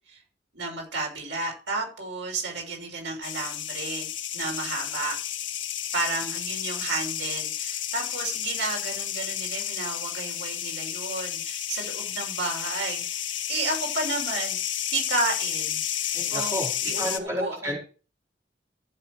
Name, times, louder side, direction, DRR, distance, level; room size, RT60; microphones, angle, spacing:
voice 1, 0.5-4.1 4.3-5.2 5.9-13.2 13.5-14.6 14.9-15.8 16.3-17.8, right 3 dB, 80° right, 0 dB, 6.2 m, -32 dB
sound 1, 3.2-17.2, left 10 dB, 80° left, 1.7 m, -31 dB
voice 2, 16.1-16.7 17.0-17.8, equal, 15° right, -3 dB, 4.7 m, -31 dB
14.5 x 7.7 x 4.9 m, 0.36 s
head